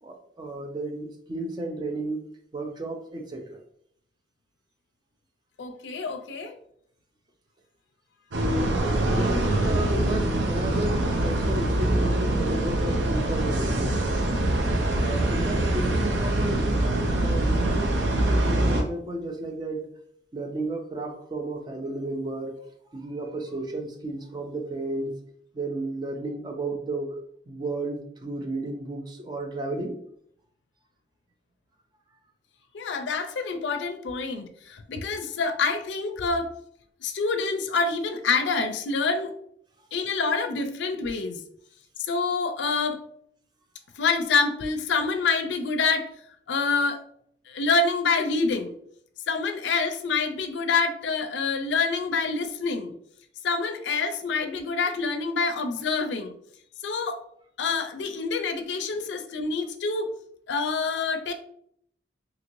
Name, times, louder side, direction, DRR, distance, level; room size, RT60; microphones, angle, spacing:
voice 1, 0.0-2.2 2.5-3.6 8.5-14.2 15.0-19.8 20.3-22.5 22.9-25.2 25.5-27.1 27.5-30.0, right 2 dB, 25° right, 3 dB, 0.4 m, -33 dB
voice 2, 5.6-6.6 32.7-36.5 37.0-39.3 39.9-41.4 42.1-43.0 44.0-46.1 46.5-47.0 47.5-48.7 49.3-52.9 53.4-56.3 56.8-57.2 57.6-60.1 60.5-61.3, left 4 dB, 80° left, 7 dB, 0.4 m, -26 dB
sound 1, 8.3-18.8, right 1 dB, 90° right, 0.6 m, -24 dB
3.0 x 2.9 x 2.5 m, 0.68 s
head